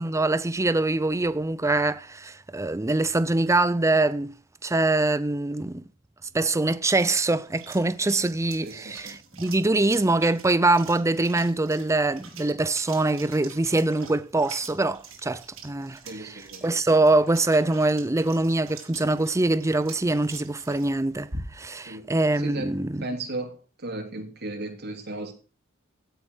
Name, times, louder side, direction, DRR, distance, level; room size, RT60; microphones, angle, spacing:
voice 1, 0.0-4.3 4.6-5.8 6.3-23.0, right 2 dB, 15° right, 0.6 m, -24 dB
sound 1, 6.3-21.8, right 4 dB, 85° right, 4.7 m, -46 dB
voice 2, 8.6-9.2 16.1-17.0 21.9-22.1 22.4-25.3, right 2 dB, 55° right, 3.1 m, -36 dB
16.0 x 8.5 x 6.2 m
head